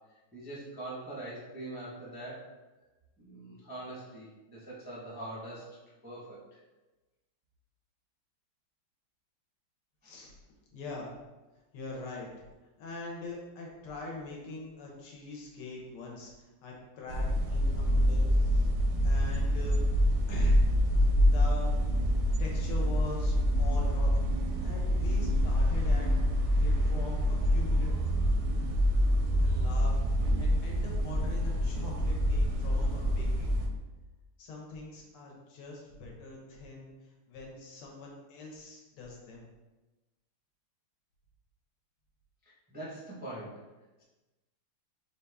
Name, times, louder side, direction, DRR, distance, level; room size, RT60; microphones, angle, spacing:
voice 1, 0.3-2.4 3.2-5.7 6.0-6.6 10.0-10.2 42.7-43.5, right 1 dB, 15° right, -8 dB, 0.3 m, -43 dB
voice 2, 10.7-11.1 11.7-12.3 12.8-18.7 19.0-19.8 20.3-20.7 21.2-21.7 22.4-24.2 24.6-26.1 26.6-27.9 29.4-30.0 30.4-33.5 34.4-36.9 37.3-39.5, left 3 dB, 80° left, -2 dB, 1.9 m, -43 dB
sound 1, 17.1-33.7, equal, 80° right, 1.4 m, -26 dB
5.2 x 2.7 x 3.4 m, 1.1 s
omnidirectional pair, 2.4 m